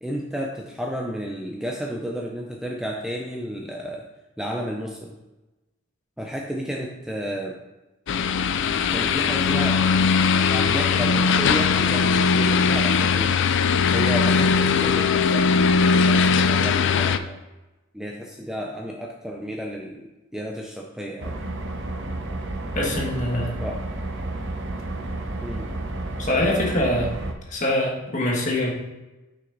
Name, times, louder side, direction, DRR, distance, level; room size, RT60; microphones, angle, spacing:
voice 1, 0.0-4.1 4.4-5.1 6.2-7.6 8.9-13.4 13.9-17.4 17.9-21.3 23.6-23.8 25.4-25.7, equal, 5° right, -1 dB, 0.4 m, -32 dB
sound 1, 8.1-17.2, left 5 dB, 55° left, 0.4 m, -20 dB
sound 2, 21.2-27.3, right 2 dB, 55° right, 0.8 m, -31 dB
voice 2, 22.7-23.6 26.2-27.1 27.5-28.7, left 1 dB, 35° left, -1 dB, 1.4 m, -24 dB
6.3 x 5.8 x 3.9 m, 1.1 s
head